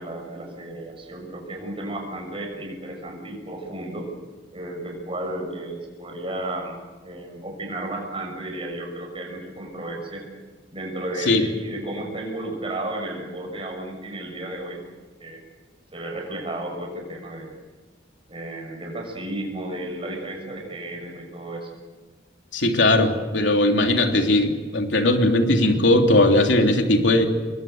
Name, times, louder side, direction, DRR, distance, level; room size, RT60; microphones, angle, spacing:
voice 1, 0.0-4.1 4.5-10.2 10.7-14.8 15.2-15.4 15.9-17.5 18.3-21.7, right 1 dB, 30° right, 1 dB, 6.5 m, -33 dB
voice 2, 22.5-27.3, left 1 dB, 80° left, 3 dB, 3.2 m, -19 dB
27.0 x 21.5 x 8.0 m, 1.3 s
head